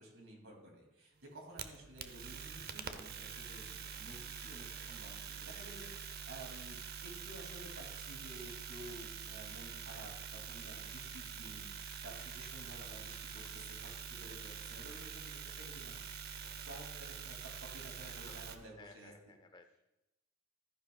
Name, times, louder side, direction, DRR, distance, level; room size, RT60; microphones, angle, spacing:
voice 1, 0.0-11.7 12.0-16.0 16.6-19.1, right 1 dB, 60° right, 1 dB, 2.5 m, -53 dB
sound 1, 1.3-18.6, right 7 dB, 45° right, 0.6 m, -46 dB
voice 2, 18.8-19.9, left 3 dB, 20° left, 8 dB, 0.6 m, -59 dB
13.0 x 10.0 x 2.3 m, 0.96 s
head